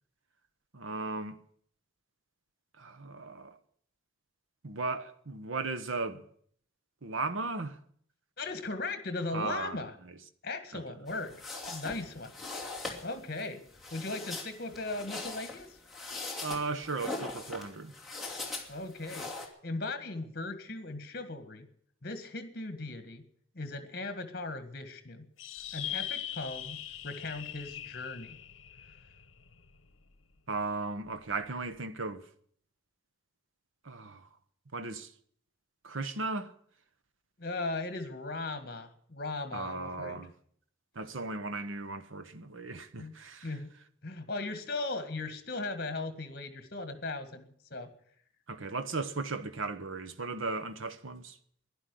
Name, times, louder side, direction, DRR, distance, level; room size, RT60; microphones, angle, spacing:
voice 1, 0.7-1.4 2.8-3.6 4.6-6.2 7.0-7.8 9.3-9.8 10.7-10.8 16.4-17.9 30.5-32.2 33.8-34.3 34.7-35.1 35.8-36.5 39.5-40.3 40.9-43.5 48.5-51.4, right 3 dB, 80° right, 1.1 m, -36 dB
voice 2, 8.4-9.9 10.4-11.4 11.7-12.3 13.0-13.6 13.9-15.7 18.7-19.3 19.6-21.7 22.0-23.2 23.5-25.3 25.7-26.8 27.0-28.4 37.4-40.3 43.0-43.1 43.4-43.7 44.0-47.9, left 2 dB, 50° left, 1.8 m, -38 dB
sound 1, 11.1-19.5, left 3 dB, ahead, 2.7 m, -41 dB
sound 2, 25.4-30.1, left 11 dB, 75° left, 1.0 m, -41 dB
11.5 x 11.0 x 9.9 m
head